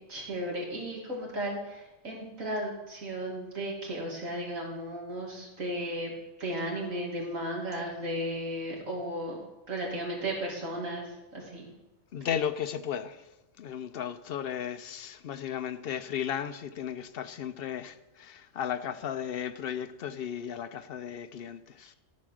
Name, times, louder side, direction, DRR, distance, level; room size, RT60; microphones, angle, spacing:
voice 1, 0.1-6.1 6.4-9.4 9.7-11.7, right 1 dB, 85° right, 2.8 m, -35 dB
voice 2, 12.1-13.3 13.6-21.9, left 9 dB, 60° left, 0.6 m, -35 dB
12.5 x 4.8 x 6.3 m
omnidirectional pair, 1.4 m